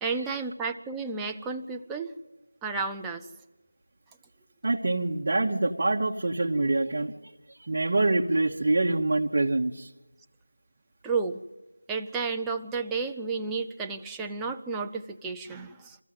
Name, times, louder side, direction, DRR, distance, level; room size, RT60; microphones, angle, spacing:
voice 1, 0.0-2.1 2.6-3.3 11.0-11.4 11.9-16.0, right 4 dB, 5° right, 2 dB, 0.6 m, -32 dB
voice 2, 4.6-7.3 7.7-9.9, right 2 dB, 45° right, -2 dB, 1.2 m, -25 dB
23.5 x 15.0 x 7.6 m, 1.1 s
figure-of-eight pair, 170°, 0 cm